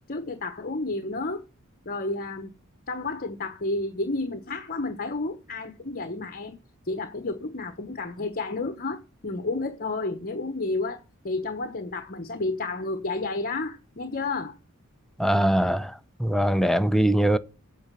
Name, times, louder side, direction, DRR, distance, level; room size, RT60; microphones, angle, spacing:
voice 1, 0.1-1.4 1.8-2.5 2.9-6.6 6.8-14.6, left 3 dB, 45° left, 1.1 m, -31 dB
voice 2, 15.2-15.9 16.2-17.4, right 1 dB, ahead, 0.6 m, -22 dB
8.7 x 6.7 x 7.6 m
head